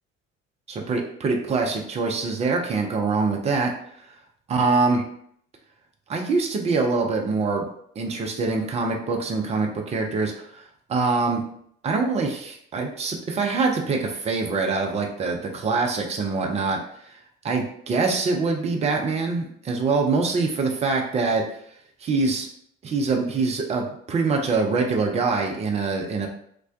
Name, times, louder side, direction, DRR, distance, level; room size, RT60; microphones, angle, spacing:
voice 1, 0.7-3.7 4.5-5.0 6.1-7.7 8.0-10.6 10.9-11.4 11.8-16.8 17.4-21.4 22.0-22.5 22.8-26.3, right 4 dB, 20° right, 2 dB, 0.4 m, -24 dB
2.4 x 2.1 x 2.5 m, 0.67 s
figure-of-eight pair, 60°, 39 cm